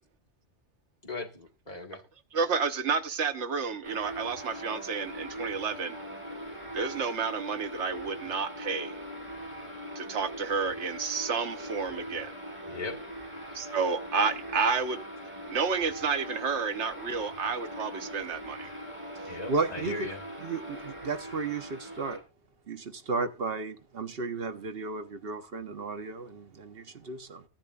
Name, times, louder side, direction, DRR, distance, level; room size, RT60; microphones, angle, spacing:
voice 1, 1.0-2.0 12.7-13.0 19.3-20.2, left 3 dB, 35° left, 1.7 m, -38 dB
voice 2, 2.3-6.0 6.7-8.9 9.9-12.3 13.5-15.0 15.5-18.7, right 5 dB, 85° right, 1.3 m, -30 dB
sound 1, 3.8-22.2, equal, 25° right, 3.5 m, -41 dB
voice 3, 19.5-20.1 20.4-22.2 22.7-27.4, right 4 dB, 60° right, 1.2 m, -34 dB
14.5 x 10.0 x 2.4 m
omnidirectional pair, 1.2 m